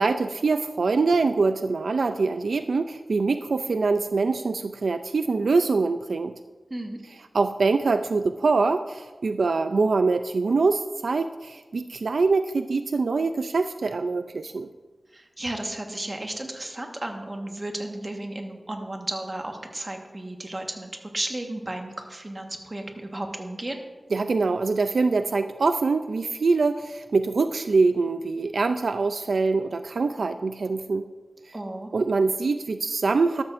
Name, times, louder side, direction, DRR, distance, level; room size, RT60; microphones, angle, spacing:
voice 1, 0.0-6.3 7.3-14.7 24.1-31.0 31.9-33.4, right 4 dB, 80° right, 9 dB, 0.3 m, -24 dB
voice 2, 15.1-23.8 31.5-31.9, right 1 dB, 30° right, 3 dB, 1.4 m, -34 dB
13.0 x 12.5 x 2.6 m, 1.3 s
wide cardioid pair, 95°, 0 cm